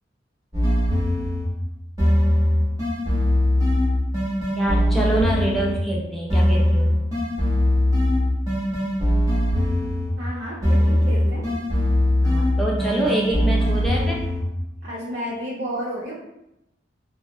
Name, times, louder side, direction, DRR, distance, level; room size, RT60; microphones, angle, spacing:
sound 1, 0.5-1.6 2.0-5.9 6.3-10.3 10.6-14.6, left 1 dB, 20° right, 0.8 m, -21 dB
voice 1, 4.6-7.0 12.2-14.2, right 1 dB, ahead, -4 dB, 0.3 m, -25 dB
voice 2, 10.2-11.4 14.8-16.1, equal, 70° right, -8 dB, 0.6 m, -31 dB
2.5 x 2.0 x 2.6 m, 0.87 s
head